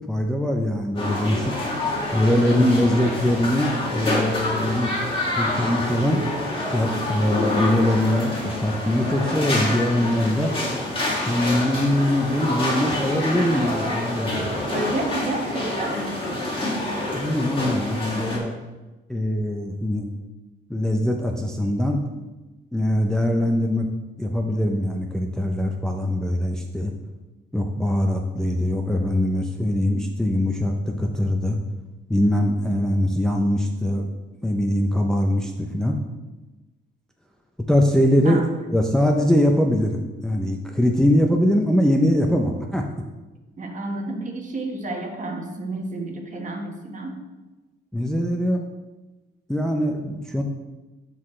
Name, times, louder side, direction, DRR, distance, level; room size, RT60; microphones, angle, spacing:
voice 1, 0.1-1.5 2.1-4.9 5.4-6.2 6.7-10.5 11.3-14.4 17.1-18.5 19.1-20.1 20.7-22.0 22.7-23.9 24.2-26.9 27.5-31.6 32.1-34.1 34.4-36.0 37.7-38.4 38.7-42.9 47.9-48.6 49.5-50.4, left 1 dB, 5° left, 1 dB, 0.7 m, -22 dB
sound 1, 1.0-18.4, left 1 dB, 25° left, 2.2 m, -27 dB
voice 2, 14.7-16.2 38.2-38.4 43.6-47.1, right 2 dB, 40° right, 2 dB, 1.4 m, -30 dB
12.0 x 4.1 x 3.2 m, 1.1 s
cardioid pair, 90°, 20 cm